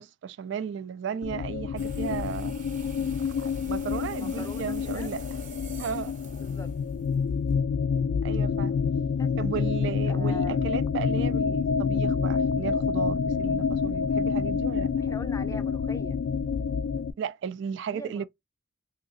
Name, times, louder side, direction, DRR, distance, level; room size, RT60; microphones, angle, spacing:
voice 1, 0.0-2.6 3.0-5.2 5.8-6.1 8.2-8.7 9.4-14.9 17.2-18.2, right 7 dB, 65° right, 0.3 m, -35 dB
sound 1, 1.2-17.1, left 6 dB, 85° left, 0.3 m, -27 dB
sound 2, 1.8-7.5, right 6 dB, 40° right, 0.7 m, -49 dB
voice 2, 4.2-5.1 6.4-6.7 9.2-9.3 10.1-10.6 15.0-16.2 17.9-18.2, left 2 dB, 15° left, 0.4 m, -42 dB
3.7 x 2.8 x 2.3 m
head